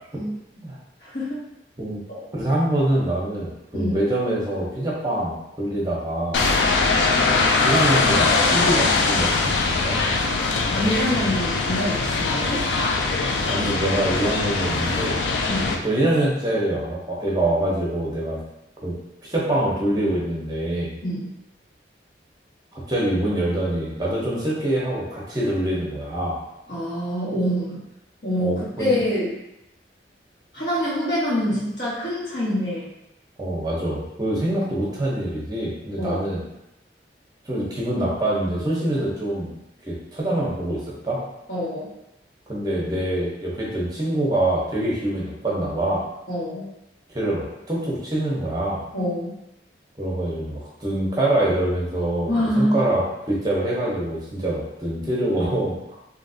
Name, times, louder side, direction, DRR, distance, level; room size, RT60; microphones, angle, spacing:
voice 1, 1.0-1.4 2.1-2.2 3.7-4.0 10.7-12.6 15.5-15.8 21.0-21.3 26.7-27.8 28.2-29.4 30.5-32.9 36.0-36.3 41.5-41.9 46.3-46.7 48.9-49.3 52.3-52.8, equal, 65° left, -9 dB, 1.5 m, -25 dB
voice 2, 2.3-6.5 7.6-10.0 13.5-15.2 15.8-18.4 18.8-19.0 19.3-20.9 22.7-26.4 28.4-29.0 33.4-36.4 37.5-39.5 39.9-41.2 42.5-46.0 47.1-48.8 50.0-52.3 52.6-56.0, right 1 dB, 20° right, -5 dB, 0.8 m, -25 dB
sound 1, 6.3-15.7, left 3 dB, 90° left, 0.4 m, -21 dB
3.2 x 2.7 x 2.7 m, 0.87 s
head